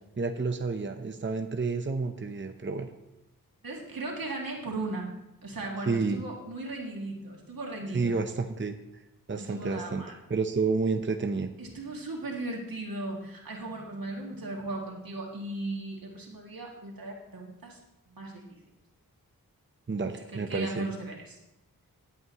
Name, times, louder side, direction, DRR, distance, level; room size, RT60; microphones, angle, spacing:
voice 1, 0.2-2.9 5.9-6.2 7.9-8.8 9.3-10.0 10.3-11.5 19.9-20.9, right 4 dB, 35° right, 6 dB, 0.8 m, -30 dB
voice 2, 3.6-8.2 9.3-10.1 11.6-17.8 18.1-18.4 20.3-21.4, right 2 dB, 85° right, -1 dB, 2.3 m, -37 dB
19.0 x 8.4 x 3.0 m, 0.90 s
wide cardioid pair, 65°, 34 cm